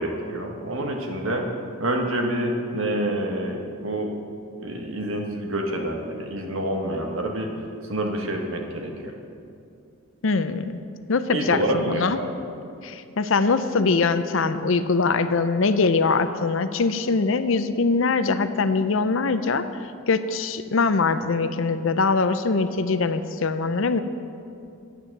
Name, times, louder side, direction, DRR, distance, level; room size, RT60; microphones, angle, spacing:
voice 1, 0.0-1.5 1.8-4.1 4.6-7.5 7.8-9.1 11.3-12.3, right 1 dB, 65° right, 2 dB, 1.5 m, -27 dB
voice 2, 10.2-10.8 11.1-12.2 12.8-19.7 20.1-24.0, left 4 dB, 60° left, 11 dB, 0.6 m, -22 dB
11.5 x 9.2 x 6.6 m, 2.5 s
head